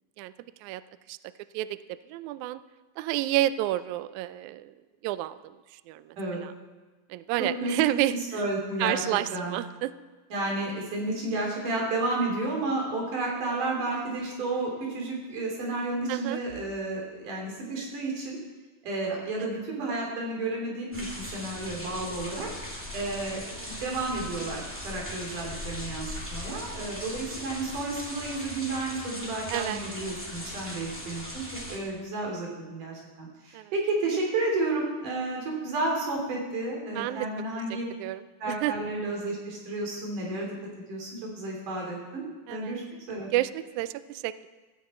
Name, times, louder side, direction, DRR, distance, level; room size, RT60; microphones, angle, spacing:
voice 1, 2.1-2.6 3.0-4.7 5.0-6.5 7.1-8.4 8.8-9.9 16.1-16.4 23.6-23.8 29.5-29.8 33.5-33.7 36.9-37.3 38.0-38.7 42.5-42.8 43.3-44.5, right 14 dB, 90° right, 15 dB, 1.7 m, -30 dB
voice 2, 7.4-7.7 8.3-9.0 9.3-9.6 10.3-18.4 18.8-22.5 22.9-23.6 23.8-31.4 31.7-37.8 38.4-40.5 40.9-43.3, right 2 dB, 65° right, -1 dB, 4.6 m, -31 dB
sound 1, 20.9-31.8, left 1 dB, 5° right, 1.7 m, -39 dB
16.0 x 13.5 x 4.3 m, 1.3 s
omnidirectional pair, 4.0 m